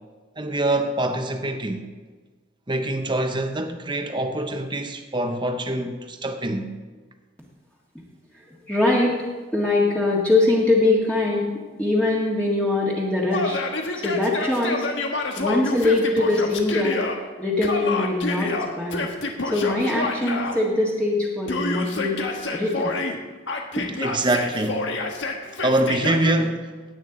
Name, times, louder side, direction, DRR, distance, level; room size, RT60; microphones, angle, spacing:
voice 1, 0.4-1.9 2.7-6.7 24.0-24.9 25.6-26.7, right 1 dB, 25° right, 0.9 m, -25 dB
voice 2, 8.7-9.2 9.5-11.5 11.8-13.6 14.0-14.9 15.4-17.0 17.4-19.1 19.4-22.2 22.5-23.0 23.8-23.9, left 2 dB, 5° left, 1.7 m, -22 dB
Yell, 13.3-17.2 17.6-20.6 21.5-23.2 23.5-26.4, left 3 dB, 80° left, 1.4 m, -28 dB
17.0 x 8.9 x 3.9 m
head